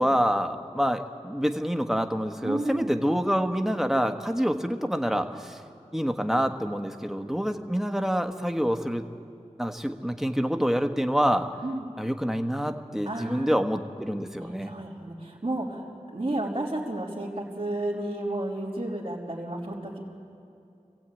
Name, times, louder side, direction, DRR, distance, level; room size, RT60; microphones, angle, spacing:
voice 1, 0.0-5.6 5.9-9.1 9.6-11.5 12.0-14.7, equal, 5° right, 5 dB, 1.3 m, -27 dB
voice 2, 2.4-2.9 11.6-11.9 13.0-13.5 14.4-15.8 16.1-20.0, right 1 dB, 45° right, -5 dB, 3.3 m, -32 dB
24.5 x 16.0 x 8.9 m, 2.6 s
wide cardioid pair, 55°, 13 cm